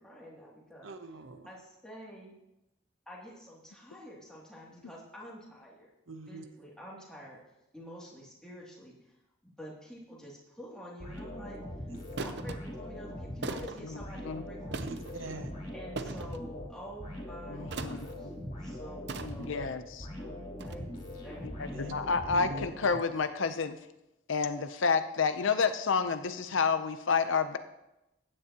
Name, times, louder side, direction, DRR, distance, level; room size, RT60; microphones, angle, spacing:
voice 1, 0.0-0.9 1.4-2.3 3.1-5.9 6.3-7.4 7.7-9.1 9.4-11.6 12.2-15.0 15.7-18.3 18.6-19.6 20.2-21.9 22.7-22.8, equal, 5° left, -5 dB, 2.5 m, -48 dB
voice 2, 0.8-1.5 6.1-6.4 11.9-12.1 14.8-15.5 21.7-21.9 22.3-22.7, right 2 dB, 75° right, 8 dB, 0.9 m, -43 dB
sound 1, 11.0-23.2, left 1 dB, 40° left, 3.1 m, -42 dB
sound 2, 11.0-11.2 12.2-12.6 13.4-13.8 14.7-15.1 16.0-16.4 17.7-18.1 19.1-19.6 20.6-20.7, right 3 dB, 55° right, 0.6 m, -38 dB
voice 3, 13.8-14.4 17.5-18.0 19.2-20.1 21.4-23.8 24.3-27.6, left 5 dB, 70° left, 10 dB, 0.6 m, -30 dB
15.0 x 9.8 x 2.9 m, 0.90 s
head